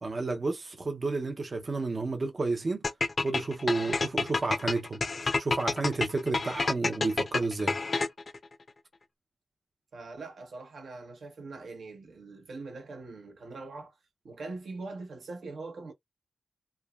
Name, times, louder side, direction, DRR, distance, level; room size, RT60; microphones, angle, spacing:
voice 1, 0.0-2.8 3.2-5.0 5.4-7.8, right 3 dB, 40° right, 0.5 m, -31 dB
sound 1, 2.8-8.4, left 3 dB, 45° left, 0.5 m, -29 dB
voice 2, 9.9-13.9 14.2-15.9, right 3 dB, 75° right, 0.8 m, -42 dB
3.2 x 2.2 x 2.2 m
wide cardioid pair, 95°, 0 cm